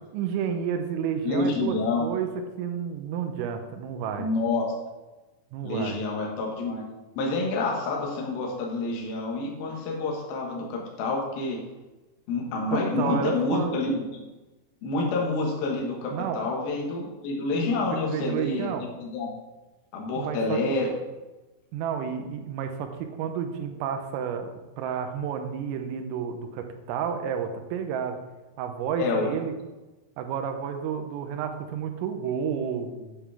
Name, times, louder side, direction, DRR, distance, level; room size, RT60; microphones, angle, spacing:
voice 1, 0.1-2.3 2.6-4.3 5.5-6.0 12.7-13.7 16.1-16.4 17.5-18.8 20.1-20.7 21.7-24.5 24.8-28.2 28.6-29.5 30.2-33.3, right 8 dB, 85° right, 5 dB, 3.5 m, -31 dB
voice 2, 1.2-2.1 4.2-4.6 5.6-6.8 7.2-11.6 12.3-14.2 14.8-18.7 19.0-19.3 19.9-20.9 29.0-29.3, left 3 dB, 60° left, -1 dB, 2.8 m, -28 dB
9.3 x 7.2 x 3.5 m, 1.1 s
omnidirectional pair, 5.9 m